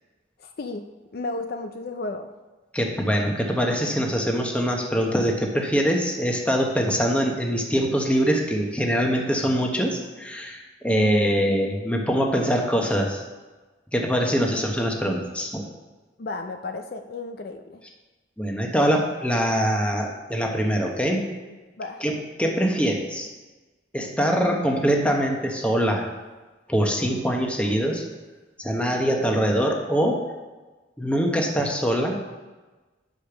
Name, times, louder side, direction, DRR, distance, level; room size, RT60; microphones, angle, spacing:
voice 1, 0.4-2.3 10.9-11.1 14.5-14.6 16.2-17.8 21.8-22.0, left 3 dB, 55° left, 6 dB, 0.4 m, -34 dB
voice 2, 2.7-13.2 13.9-15.6 18.4-21.2 22.0-23.3 23.9-26.1 26.7-28.0 28.6-30.2 31.0-32.2, equal, 5° left, 1 dB, 1.0 m, -23 dB
8.3 x 5.1 x 5.9 m, 1.2 s
head